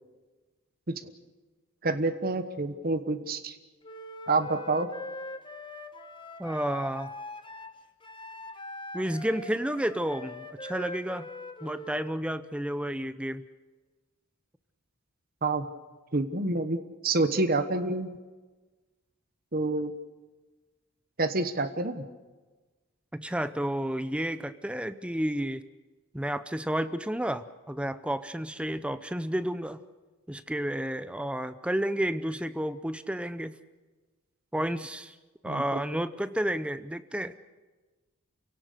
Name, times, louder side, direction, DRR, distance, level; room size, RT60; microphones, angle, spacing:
voice 1, 1.8-3.5 4.3-4.9 15.4-15.7 16.1-16.8 17.0-18.1 19.5-19.9 21.2-22.0 35.4-35.8, right 2 dB, 45° right, 8 dB, 1.2 m, -27 dB
Wind instrument woodwind instrument, 3.8-12.2, left 1 dB, 20° left, 1.2 m, -42 dB
voice 2, 6.4-7.1 8.9-11.3 11.6-13.4 23.1-25.6 26.1-29.8 30.3-33.5 34.5-35.1 35.4-37.5, right 1 dB, 5° right, 12 dB, 0.6 m, -31 dB
29.0 x 17.5 x 6.8 m, 1.3 s
head